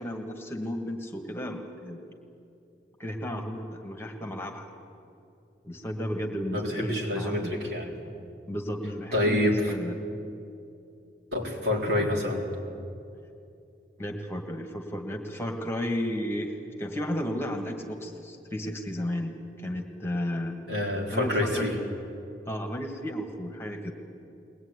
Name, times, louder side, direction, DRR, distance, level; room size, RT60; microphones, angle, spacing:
voice 1, 0.0-2.0 3.0-4.7 5.6-7.5 8.5-10.0 14.0-20.6 21.1-21.7 22.5-23.9, equal, 15° left, 3 dB, 1.8 m, -33 dB
voice 2, 6.5-8.0 9.1-9.7 11.3-12.4 20.7-21.7, left 1 dB, 70° right, -1 dB, 4.1 m, -27 dB
22.0 x 19.5 x 9.8 m, 2.6 s
head